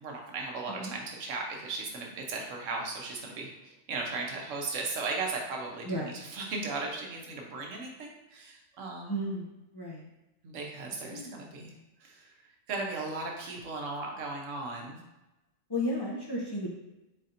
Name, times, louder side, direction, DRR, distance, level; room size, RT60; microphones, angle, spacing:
voice 1, 0.0-9.2 10.4-11.7 12.0-12.3 12.7-15.0, right 3 dB, 85° right, 0 dB, 1.2 m, -37 dB
voice 2, 5.8-6.2 9.1-10.1 11.1-11.5 15.7-16.8, equal, 30° left, -4 dB, 0.4 m, -34 dB
4.2 x 4.1 x 2.5 m, 1.0 s
omnidirectional pair, 1.3 m